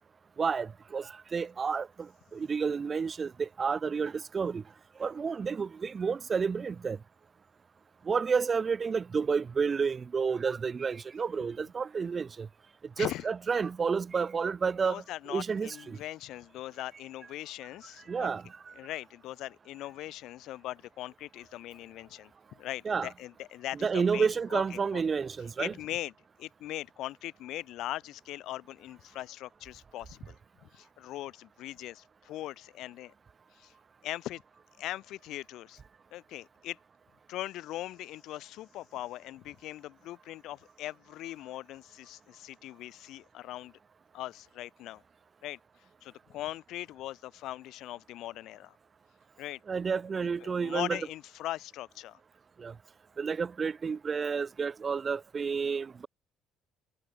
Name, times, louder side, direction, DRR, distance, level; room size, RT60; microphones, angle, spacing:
voice 1, 0.4-4.6 5.0-7.0 8.1-12.5 13.0-15.0 15.3-16.0 18.1-18.7 22.9-23.1 23.8-25.7 49.7-51.0 52.6-52.7 53.2-56.1, right 5 dB, 30° right, 0.6 m, -30 dB
voice 2, 13.0-13.3 14.8-18.3 18.7-22.3 22.6-25.0 25.6-26.1 26.4-30.4 30.6-33.1 33.5-33.7 34.0-34.4 34.8-35.8 36.1-36.8 37.3-43.7 44.1-45.0 45.4-45.6 46.0-48.8 49.4-49.6 50.2-52.2, left 15 dB, 70° left, 5.6 m, -40 dB
cardioid pair, 130°, 0 cm